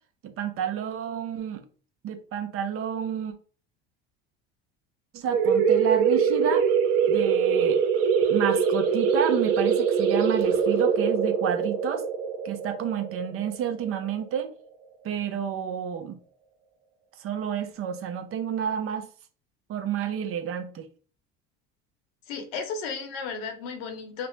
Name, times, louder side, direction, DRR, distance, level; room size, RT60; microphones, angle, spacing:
voice 1, 0.2-1.6 2.0-3.3 5.1-6.7 7.1-7.8 8.3-12.0 12.4-14.5 15.0-16.2 17.2-19.1 19.7-20.9, right 8 dB, 45° right, 0.6 m, -30 dB
sound 1, 5.3-14.6, right 6 dB, 80° right, 0.8 m, -23 dB
voice 2, 22.3-24.3, left 5 dB, 75° left, 0.9 m, -34 dB
2.5 x 2.0 x 3.1 m
supercardioid pair, 85°, 30 cm